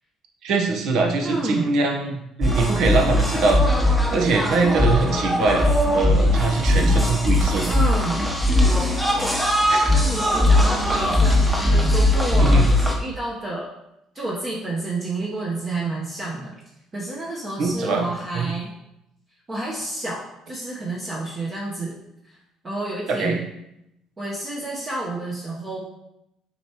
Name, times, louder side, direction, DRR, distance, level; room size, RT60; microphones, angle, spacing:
voice 1, 0.4-3.6 4.1-7.7 9.7-9.9 12.4-12.7 17.6-18.0 18.3-18.5 23.1-23.4, right 3 dB, 70° right, 2 dB, 1.0 m, -23 dB
voice 2, 1.2-1.7 7.7-8.2 9.9-13.7 14.1-16.5 16.9-18.7 19.5-21.9 22.2-22.4 22.6-23.4 24.2-25.8, right 2 dB, 30° right, -4 dB, 1.1 m, -29 dB
sound 1, 2.4-12.9, left 1 dB, 5° right, 1.0 m, -19 dB
6.9 x 4.5 x 3.0 m, 0.83 s
cardioid pair, 105°, 0 cm